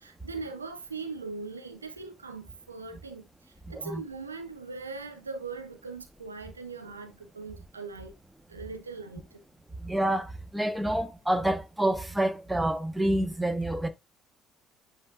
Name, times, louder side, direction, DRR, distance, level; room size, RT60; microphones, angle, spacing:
voice 1, 0.0-8.1 8.5-9.4, right 4 dB, 85° right, 0.8 m, -40 dB
voice 2, 9.8-13.9, right 1 dB, 10° right, 1.4 m, -28 dB
9.4 x 3.9 x 2.6 m
figure-of-eight pair, 50°, 0 cm